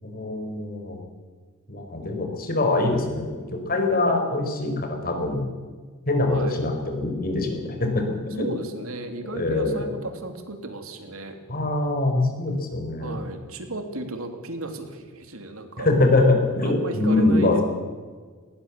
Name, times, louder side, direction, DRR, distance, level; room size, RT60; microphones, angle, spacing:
voice 1, 0.0-1.0 1.7-5.4 6.1-8.4 9.3-9.9 11.5-13.2 15.8-17.6, left 2 dB, 45° left, 4 dB, 4.6 m, -23 dB
voice 2, 6.3-6.6 8.4-11.4 13.0-15.9 16.6-17.6, right 2 dB, 70° right, 6 dB, 2.8 m, -34 dB
19.5 x 19.0 x 7.4 m, 1.5 s
head